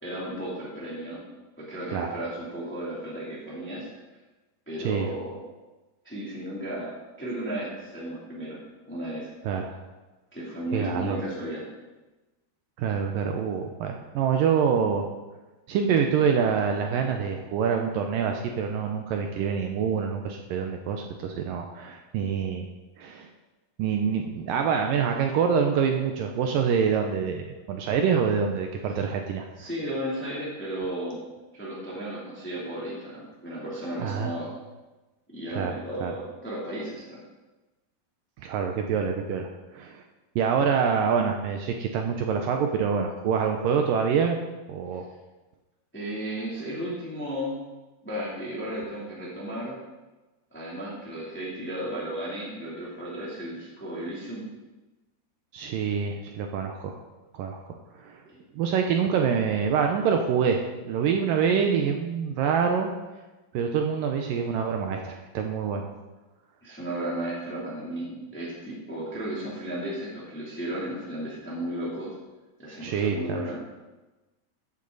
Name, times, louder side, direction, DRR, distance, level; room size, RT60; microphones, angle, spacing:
voice 1, 0.0-1.2 1.6-3.9 4.7-5.4 6.0-6.9 7.2-8.6 8.9-9.3 10.3-11.7 29.6-31.2 31.5-34.5 35.3-37.2 45.9-47.6 48.0-49.8 50.5-54.5 58.2-58.4 66.6-72.1 72.6-73.6, right 1 dB, 5° left, -6 dB, 2.1 m, -34 dB
voice 2, 4.8-5.1 9.4-9.7 10.7-11.2 12.8-15.1 15.7-22.7 23.0-23.3 23.8-29.5 34.0-34.3 35.5-36.1 38.4-39.5 39.7-40.0 40.4-44.4 44.7-45.1 55.5-56.9 57.3-57.6 57.9-58.2 58.5-62.9 63.5-65.9 72.8-73.4, right 6 dB, 80° right, 3 dB, 2.1 m, -26 dB
14.0 x 8.6 x 4.0 m, 1.1 s
omnidirectional pair, 4.6 m